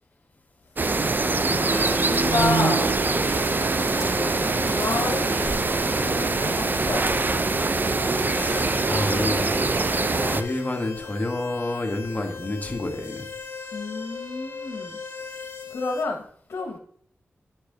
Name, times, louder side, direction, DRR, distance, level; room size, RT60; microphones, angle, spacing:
sound 1, 0.8-10.4, right 3 dB, 40° right, 0.5 m, -23 dB
voice 1, 1.2-2.9 4.7-5.6 6.0-7.5 8.9-9.4 9.9-10.1 13.7-15.0 15.7-16.2 16.5-16.8, left 3 dB, 80° left, 1.0 m, -30 dB
sound 2, 1.7-16.0, left 5 dB, 60° left, 1.5 m, -38 dB
sound 3, 1.9-3.5 3.9-4.3 4.7-6.0 6.3-6.4 6.6-7.3, equal, 10° right, 3.8 m, -38 dB
voice 2, 4.4-4.8 8.2-9.5 10.2-13.3, left 2 dB, 30° left, 1.6 m, -29 dB
9.7 x 4.7 x 3.9 m
cardioid pair, 45°, 5 cm